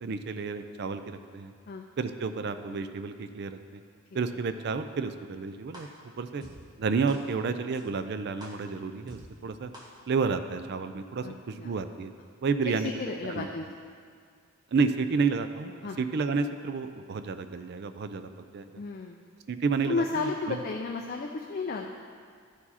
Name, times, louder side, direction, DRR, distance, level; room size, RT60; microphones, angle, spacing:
voice 1, 0.0-1.5 2.0-3.8 4.1-5.9 6.2-6.4 6.8-9.7 10.1-12.1 12.4-13.5 14.7-18.8 19.5-20.6, right 4 dB, 50° right, 10 dB, 0.4 m, -31 dB
sound 1, 5.7-5.8 6.4-6.5 7.1-7.2 7.7-7.8 8.4-8.5 9.1-9.2 9.7-9.8, equal, 20° right, 1.1 m, -45 dB
voice 2, 11.2-11.7 12.6-13.7 15.8-16.0 18.8-19.2 19.9-21.9, left 4 dB, 40° left, 2 dB, 0.4 m, -33 dB
12.0 x 4.6 x 4.2 m, 2.1 s
head